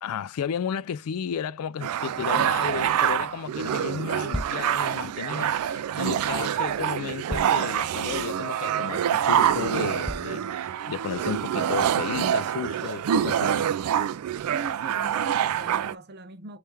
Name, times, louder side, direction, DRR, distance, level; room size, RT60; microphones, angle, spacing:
voice 1, 0.0-10.4 10.9-13.7, left 8 dB, 75° left, 0.3 m, -33 dB
sound 1, 1.8-16.0, right 9 dB, 75° right, 0.3 m, -26 dB
sound 2, 4.3-4.7 6.2-6.3 7.3-7.7 8.2-8.3 8.9-9.0 10.0-10.4, equal, ahead, 0.5 m, -34 dB
voice 2, 14.5-16.6, right 3 dB, 50° right, 0.7 m, -40 dB
3.3 x 3.2 x 3.3 m
head